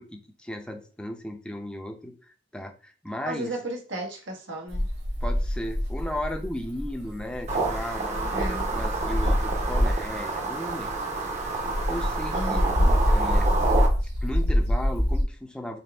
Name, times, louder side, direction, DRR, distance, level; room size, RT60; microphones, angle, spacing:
voice 1, 0.0-3.5 5.2-10.9 11.2-11.3 11.9-12.6 13.1-13.5 14.2-15.8, left 1 dB, 5° left, 0.6 m, -36 dB
voice 2, 3.2-4.9 8.3-8.7 12.3-13.0, right 1 dB, 85° right, 1.3 m, -34 dB
sound 1, 4.7-10.2 10.7-15.2, equal, 60° right, 1.8 m, -25 dB
sound 2, 7.5-13.9, right 3 dB, 40° right, 0.9 m, -29 dB
4.1 x 3.6 x 3.4 m
head